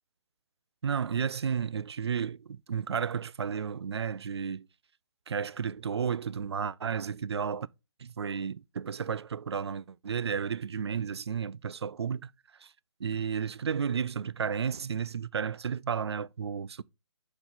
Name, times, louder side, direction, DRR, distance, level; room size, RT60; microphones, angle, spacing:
voice 1, 0.8-4.7 5.3-7.7 8.0-12.3 12.6-12.7 13.0-16.8, right 7 dB, 65° right, 0.4 m, -32 dB
5.9 x 5.4 x 3.8 m
figure-of-eight pair, 135°, 15 cm